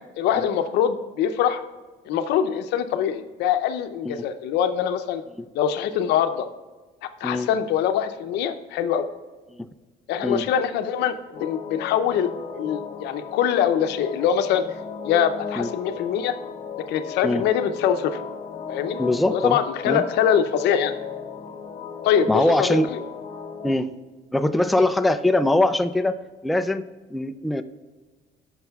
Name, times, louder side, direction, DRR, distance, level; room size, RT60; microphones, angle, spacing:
voice 1, 0.2-1.6 2.1-5.2 5.5-6.5 7.0-9.1 10.1-14.6 15.0-16.4 16.9-18.2 18.7-19.0 19.3-21.0 22.0-22.8, left 9 dB, 85° left, 10 dB, 0.6 m, -23 dB
sound 1, 11.3-23.7, left 6 dB, 50° left, 1.0 m, -35 dB
voice 2, 19.0-19.6 19.9-20.0 22.3-22.9 23.6-23.9 24.3-26.2 26.4-26.8 27.1-27.6, left 1 dB, ahead, 9 dB, 0.3 m, -22 dB
14.5 x 6.0 x 2.3 m, 1.3 s
cardioid pair, 110°, 17 cm